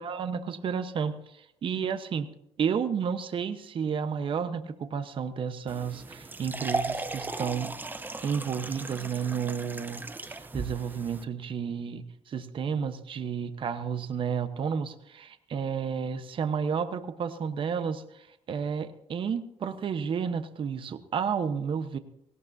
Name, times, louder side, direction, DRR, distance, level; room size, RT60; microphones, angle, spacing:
voice 1, 0.0-2.3 2.6-7.7 8.2-22.0, right 6 dB, 50° right, 10 dB, 1.1 m, -31 dB
sound 1, 5.7-11.2, right 3 dB, 15° right, 0.8 m, -36 dB
18.0 x 18.0 x 2.7 m, 0.78 s
cardioid pair, 115°, 11 cm